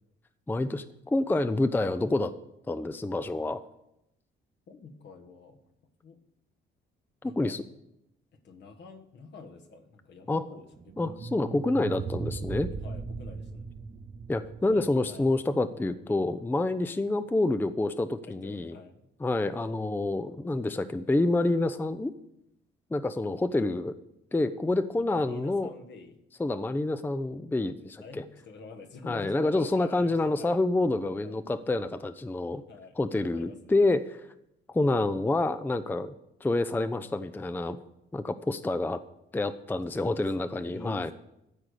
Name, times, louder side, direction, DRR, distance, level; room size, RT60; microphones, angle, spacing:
voice 1, 0.5-2.3 2.7-3.6 7.2-7.6 10.3-10.4 11.0-12.7 14.3-18.7 19.2-22.1 22.9-24.0 24.3-25.7 26.4-28.2 29.1-32.6 33.0-34.2 34.7-36.1 36.4-37.8 38.1-39.0 39.3-41.1, left 2 dB, 10° left, 12 dB, 0.5 m, -28 dB
voice 2, 4.7-5.7 6.0-6.2 7.2-7.6 8.4-11.2 12.1-12.5 12.8-13.8 14.6-15.4 16.1-16.2 18.3-19.1 24.9-26.2 28.0-30.6 31.2-31.4 32.7-33.0 33.3-33.9 39.7-41.1, left 4 dB, 60° left, 4 dB, 1.4 m, -48 dB
sound 1, 10.7-15.9, right 5 dB, 35° right, 0.7 m, -38 dB
12.5 x 4.8 x 6.7 m, 0.84 s
cardioid pair, 90°, 20 cm